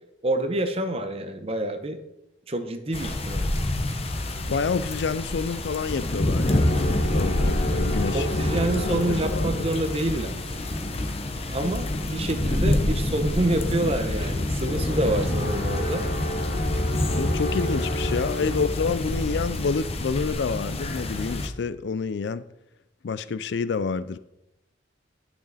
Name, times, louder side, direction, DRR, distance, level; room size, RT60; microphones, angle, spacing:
voice 1, 0.2-2.0 2.5-3.5 8.1-10.4 11.5-16.0, right 1 dB, 30° right, 0.8 m, -27 dB
sound 1, 2.9-21.5, left 1 dB, 30° left, 0.8 m, -27 dB
voice 2, 4.5-8.3 8.9-9.5 17.1-22.4 23.0-24.2, left 5 dB, 65° left, 0.4 m, -28 dB
sound 2, 6.4-10.2 14.6-19.5, left 1 dB, 45° left, 2.0 m, -31 dB
11.5 x 6.3 x 4.1 m
head